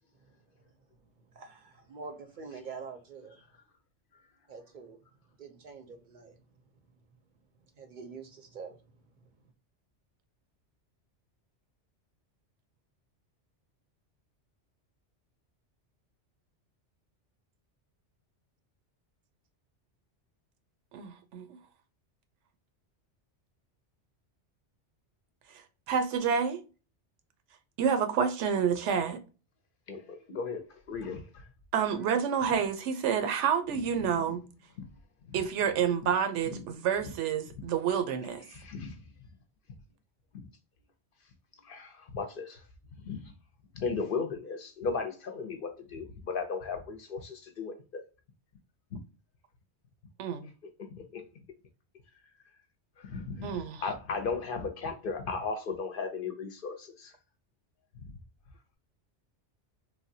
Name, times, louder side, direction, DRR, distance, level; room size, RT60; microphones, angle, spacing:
voice 1, 1.3-3.4 4.5-5.0 5.4-6.4 7.8-8.8, right 5 dB, 55° right, 0.6 m, -45 dB
voice 2, 20.9-21.5 25.9-26.6 27.8-29.2 31.7-34.4 35.3-38.4 50.2-50.5 53.4-53.8, right 7 dB, 90° right, 0.9 m, -28 dB
voice 3, 29.9-30.6 30.9-31.3 35.3-35.4 36.5-36.6 38.5-39.0 40.3-40.4 41.6-42.6 43.0-43.3 43.7-47.8 51.0-51.2 53.0-53.5 53.8-57.1, left 4 dB, 60° left, 0.7 m, -36 dB
3.2 x 2.2 x 2.5 m
omnidirectional pair, 1.2 m